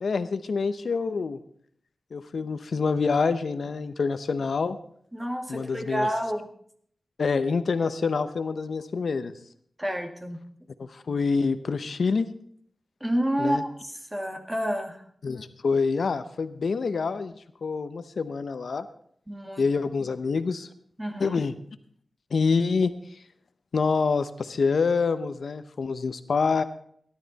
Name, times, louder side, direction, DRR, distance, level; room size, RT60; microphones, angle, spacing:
voice 1, 0.0-1.4 2.1-4.8 5.5-6.1 7.2-9.3 10.8-12.3 13.4-13.6 15.2-17.3 17.6-18.9 19.6-20.7 21.2-21.5 22.3-23.2 23.7-26.6, left 4 dB, 75° left, 12 dB, 0.8 m, -26 dB
voice 2, 5.1-6.5 9.8-10.4 13.0-15.0 19.3-19.7 21.0-21.4, equal, 10° right, 4 dB, 2.0 m, -29 dB
17.0 x 12.0 x 4.1 m, 0.63 s
wide cardioid pair, 80°, 0 cm